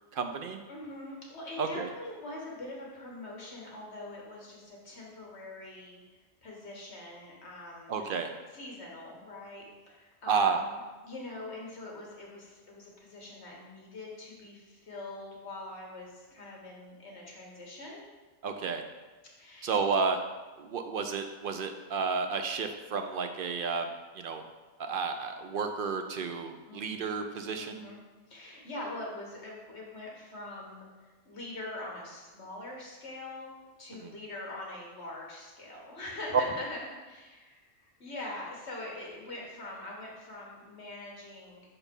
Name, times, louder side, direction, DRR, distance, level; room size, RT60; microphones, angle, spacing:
voice 1, 0.1-0.6 1.6-1.9 7.9-8.3 10.3-10.6 18.4-18.8 19.6-20.2 20.6-23.9 24.1-24.4 24.8-27.9 33.9-34.1, right 5 dB, 60° right, 6 dB, 0.6 m, -31 dB
voice 2, 0.7-8.1 8.5-10.8 11.0-18.0 19.3-19.8 26.7-27.0 27.6-28.0 28.3-33.5 33.8-41.6, left 2 dB, 65° left, -2 dB, 1.7 m, -43 dB
5.9 x 4.3 x 5.2 m, 1.2 s
omnidirectional pair, 1.2 m